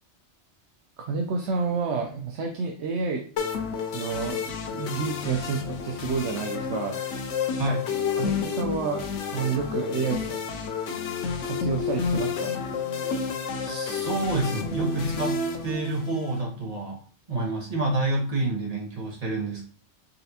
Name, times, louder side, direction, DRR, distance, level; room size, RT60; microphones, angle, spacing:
voice 1, 1.0-3.2 3.9-7.0 8.2-10.4 11.4-12.5, right 5 dB, 75° right, 2 dB, 0.9 m, -29 dB
sound 1, 3.4-16.4, left 5 dB, 85° left, 1.0 m, -30 dB
voice 2, 13.6-17.0 17.3-19.6, right 2 dB, 35° right, -2 dB, 1.2 m, -28 dB
4.1 x 3.2 x 2.8 m, 0.42 s
omnidirectional pair, 1.2 m